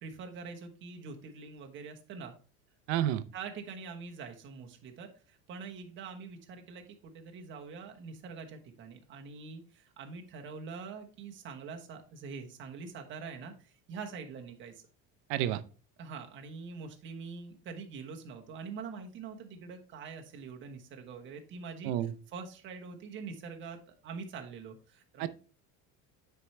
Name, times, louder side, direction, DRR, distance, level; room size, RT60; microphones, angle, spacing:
voice 1, 0.0-2.3 3.3-14.8 16.0-25.3, right 5 dB, 35° right, 1.1 m, -44 dB
voice 2, 2.9-3.2 15.3-15.6 21.8-22.1 25.2-25.3, right 12 dB, 75° right, 0.7 m, -29 dB
9.3 x 4.6 x 3.2 m
cardioid pair, 175°, 35 cm